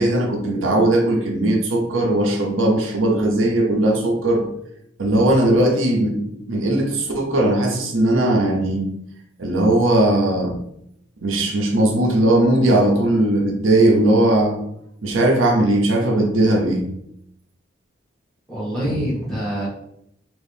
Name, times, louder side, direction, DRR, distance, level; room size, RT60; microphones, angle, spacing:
voice 1, 0.0-4.4 5.0-8.9 9.4-10.6 11.2-14.6 15.0-16.8, right 1 dB, 75° right, 0 dB, 0.7 m, -18 dB
voice 2, 18.5-19.7, equal, ahead, -9 dB, 1.3 m, -25 dB
3.0 x 2.7 x 3.4 m, 0.76 s
head